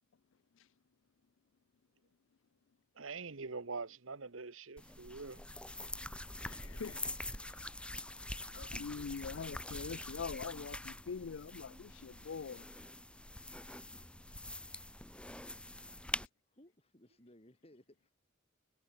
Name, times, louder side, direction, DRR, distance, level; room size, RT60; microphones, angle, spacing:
voice 1, 3.0-5.4, right 4 dB, 70° right, 1.3 m, -44 dB
sound 1, 4.8-16.3, left 1 dB, 5° left, 3.5 m, -45 dB
voice 2, 6.4-7.1 7.4-7.6 8.5-12.7, left 5 dB, 65° left, 0.5 m, -44 dB
voice 3, 16.5-18.1, left 1 dB, 30° left, 5.8 m, -62 dB
head